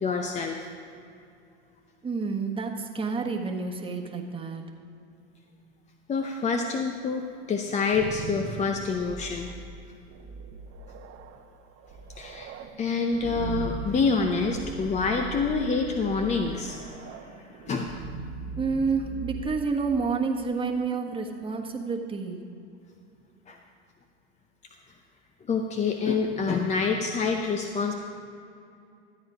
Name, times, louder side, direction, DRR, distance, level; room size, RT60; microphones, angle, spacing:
voice 1, 0.0-0.6 6.1-9.5 12.2-18.0 23.5-23.6 25.5-27.9, left 4 dB, 20° left, 4 dB, 0.7 m, -27 dB
voice 2, 2.0-4.6 18.6-22.4, right 4 dB, 15° right, 2 dB, 1.4 m, -29 dB
sound 1, 7.6-20.5, right 4 dB, 40° right, 1.0 m, -39 dB
13.0 x 8.7 x 5.0 m, 2.6 s
hypercardioid pair, 100°, 34 cm